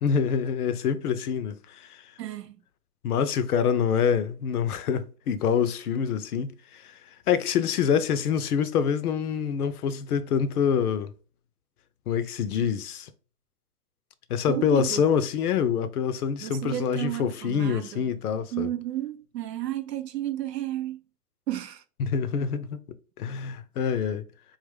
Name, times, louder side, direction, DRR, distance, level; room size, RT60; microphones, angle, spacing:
voice 1, 0.0-2.1 3.0-7.0 7.3-11.1 12.1-13.1 14.3-18.7 22.0-22.8 23.2-24.2, left 7 dB, 65° left, 0.6 m, -26 dB
voice 2, 2.2-2.6 14.5-15.0 16.4-18.1 18.5-21.0 21.5-21.8 23.8-24.1, right 13 dB, 85° right, 0.6 m, -32 dB
3.6 x 2.4 x 3.4 m
hypercardioid pair, 110°, 48 cm